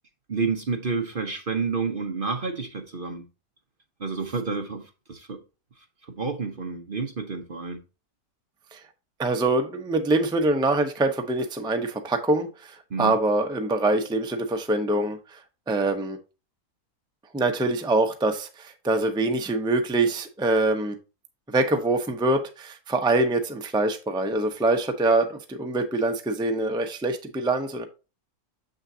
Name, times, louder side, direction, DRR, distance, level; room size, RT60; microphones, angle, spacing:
voice 1, 0.3-3.2 4.0-5.4 6.0-7.8 12.9-13.1, right 4 dB, 40° right, 0.9 m, -29 dB
voice 2, 9.2-15.4 15.7-16.2 17.3-21.0 21.5-27.9, right 2 dB, 5° right, 0.7 m, -24 dB
7.3 x 6.5 x 2.7 m
omnidirectional pair, 1.6 m